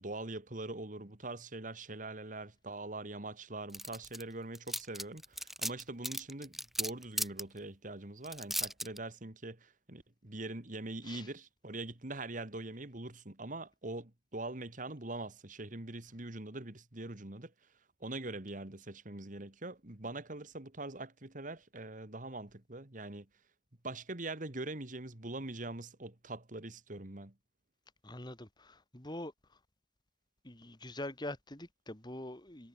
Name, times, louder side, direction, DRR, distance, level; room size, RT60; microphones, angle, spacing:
voice 1, 0.0-17.5 18.0-23.3 23.8-27.3, right 2 dB, 45° right, 2.1 m, -43 dB
sound 1, 3.7-4.2 4.5-7.4 8.2-9.0, equal, ahead, 1.9 m, -36 dB
voice 2, 28.0-29.3 30.4-32.7, left 1 dB, 25° left, 2.7 m, -44 dB
head